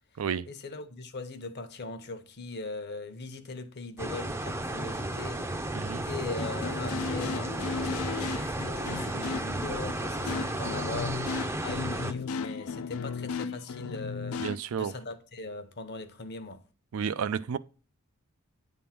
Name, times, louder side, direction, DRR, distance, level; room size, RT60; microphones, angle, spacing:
voice 1, 0.5-5.7 6.0-11.2 11.6-14.5 14.8-16.6, left 3 dB, 50° left, 0.9 m, -40 dB
sound 1, 4.0-12.1, right 1 dB, 15° right, 0.5 m, -33 dB
voice 2, 5.7-6.0 14.4-14.9 16.9-17.6, right 7 dB, 70° right, 0.4 m, -31 dB
sound 2, 6.4-14.6, left 5 dB, 80° left, 0.4 m, -36 dB
9.3 x 3.6 x 5.8 m
head